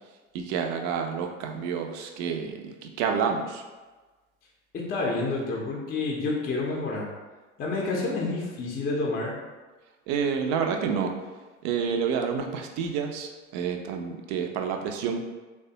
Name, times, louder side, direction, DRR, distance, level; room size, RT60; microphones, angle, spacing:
voice 1, 0.3-3.6 10.1-11.1 11.6-15.2, right 6 dB, 45° right, 4 dB, 0.4 m, -29 dB
voice 2, 4.7-7.1 7.6-9.3, left 3 dB, 25° left, -2 dB, 0.5 m, -29 dB
3.2 x 2.2 x 2.7 m, 1.3 s
figure-of-eight pair, 70°, 41 cm